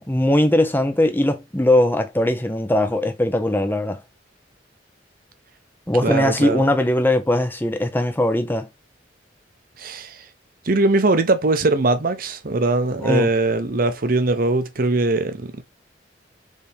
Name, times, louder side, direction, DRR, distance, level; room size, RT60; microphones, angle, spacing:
voice 1, 0.0-4.0 5.9-8.7 13.0-13.3, left 1 dB, 10° left, 0.7 m, -20 dB
voice 2, 6.0-6.6 9.8-10.2 10.6-15.6, right 2 dB, 50° right, 0.7 m, -21 dB
4.3 x 3.5 x 3.4 m
head